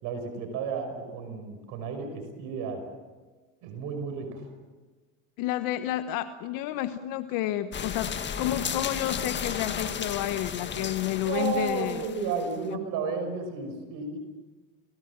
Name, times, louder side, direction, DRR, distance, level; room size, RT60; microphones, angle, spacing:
voice 1, 0.0-2.8 3.6-4.4 11.2-14.2, right 5 dB, 60° right, 5 dB, 5.8 m, -32 dB
voice 2, 5.4-12.0 12.7-12.8, left 13 dB, 60° left, 10 dB, 1.2 m, -30 dB
sound 1, 7.7-12.6, left 7 dB, 30° left, 1.8 m, -34 dB
29.0 x 19.0 x 7.4 m, 1.3 s
supercardioid pair, 100°, 37 cm